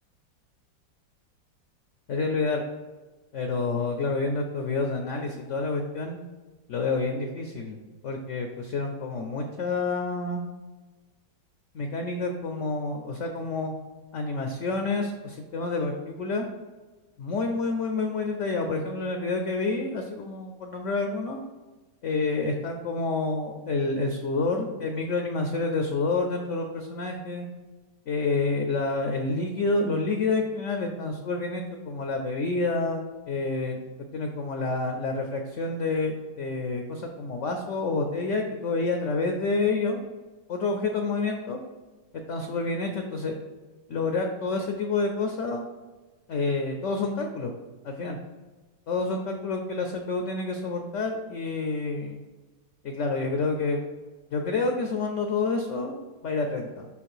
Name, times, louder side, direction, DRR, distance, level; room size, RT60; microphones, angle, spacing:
voice 1, 2.1-2.6 3.3-6.2 6.7-7.8 8.0-10.4 11.7-13.7 14.1-16.5 17.2-21.4 22.0-27.5 28.1-33.8 34.1-40.0 40.5-41.6 42.3-43.3 43.9-45.6 46.3-47.5 47.8-48.2 48.9-52.2 52.8-53.8 54.3-56.9, left 3 dB, 65° left, 4 dB, 0.7 m, -28 dB
5.4 x 5.2 x 4.8 m, 1.3 s
omnidirectional pair, 1.9 m